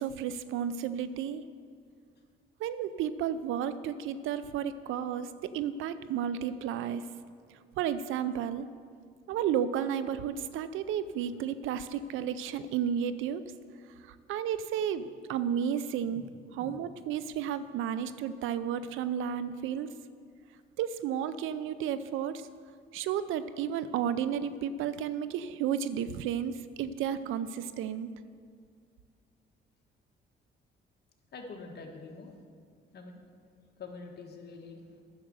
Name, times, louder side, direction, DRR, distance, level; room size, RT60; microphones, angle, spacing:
voice 1, 0.0-1.4 2.6-7.0 7.8-8.7 9.3-13.4 14.0-16.2 16.5-19.9 20.8-22.5 22.9-28.1, right 9 dB, 85° right, 14 dB, 0.5 m, -32 dB
voice 2, 31.3-32.4 32.9-33.3 33.8-35.0, left 4 dB, 55° left, 2 dB, 1.7 m, -46 dB
10.0 x 6.5 x 7.8 m, 2.1 s
cardioid pair, 90°, 20 cm